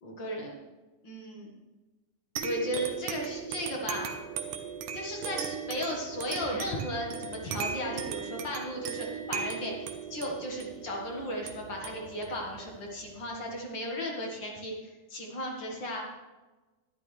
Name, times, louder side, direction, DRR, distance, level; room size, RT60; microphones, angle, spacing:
voice 1, 0.0-0.6 1.0-1.5 2.4-4.2 4.9-9.7 10.1-14.8 15.1-16.0, equal, 50° left, 0 dB, 1.4 m, -35 dB
sound 1, 2.4-13.4, right 7 dB, 75° right, 2.1 m, -38 dB
12.5 x 11.0 x 3.2 m, 1.2 s
omnidirectional pair, 4.0 m